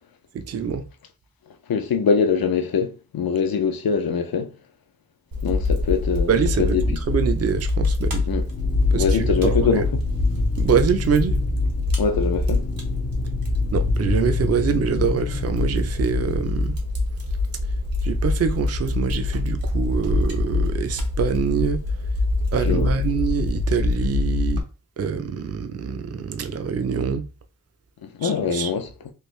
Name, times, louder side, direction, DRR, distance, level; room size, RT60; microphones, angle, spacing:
voice 1, 0.3-0.8 6.3-8.3 8.9-9.9 10.6-11.4 13.7-16.7 18.0-21.8 22.5-24.6 25.0-27.2 28.2-28.7, right 6 dB, 45° right, 0.4 m, -25 dB
voice 2, 1.7-4.5 5.4-6.3 6.6-7.0 8.3-8.5 8.9-10.0 12.0-12.7 22.7-22.9 28.0-28.9, left 6 dB, 85° left, 0.6 m, -23 dB
Fire, 5.3-24.6, left 2 dB, 80° right, 1.0 m, -24 dB
sound 1, 8.5-16.4, left 4 dB, 30° left, 0.4 m, -33 dB
3.2 x 2.5 x 3.1 m
wide cardioid pair, 100°, 34 cm